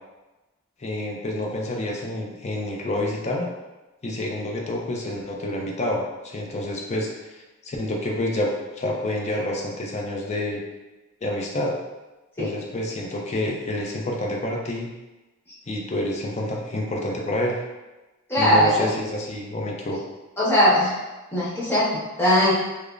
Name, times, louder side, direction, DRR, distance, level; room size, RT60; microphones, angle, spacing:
voice 1, 0.8-3.5 4.0-7.1 7.6-8.5 8.8-10.6 11.2-11.7 12.4-14.9 15.7-17.6 18.4-20.0, left 1 dB, 30° left, -1 dB, 0.5 m, -28 dB
voice 2, 18.3-18.9 20.4-20.9 21.3-22.5, equal, 10° left, -9 dB, 1.1 m, -20 dB
4.9 x 2.1 x 2.5 m, 1.1 s
head